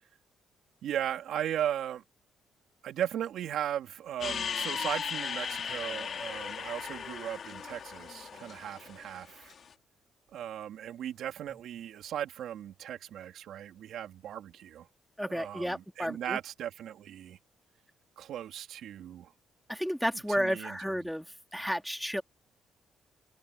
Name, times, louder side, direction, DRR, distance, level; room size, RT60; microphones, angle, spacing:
voice 1, 0.8-2.0 2.8-9.5 10.3-14.9 15.3-17.4 18.2-19.3 20.3-21.0, right 10 dB, 75° right, 3.3 m, -37 dB
sound 1, 4.2-9.6, left 7 dB, 55° left, 2.3 m, -37 dB
voice 2, 15.2-16.4 19.7-21.3 21.5-22.2, equal, ahead, 2.4 m, -32 dB
cardioid pair, 90°, 0 cm